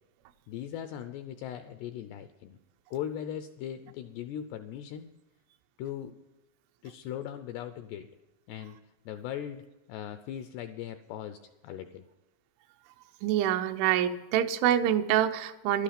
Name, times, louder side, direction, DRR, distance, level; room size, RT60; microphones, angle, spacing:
voice 1, 0.5-2.6 2.9-5.1 5.8-6.2 6.8-8.1 8.5-11.4 11.6-12.0, left 10 dB, 85° left, 9 dB, 2.4 m, -39 dB
voice 2, 13.2-15.8, right 11 dB, 85° right, 9 dB, 3.1 m, -26 dB
12.0 x 11.5 x 5.8 m, 1.1 s
omnidirectional pair, 5.4 m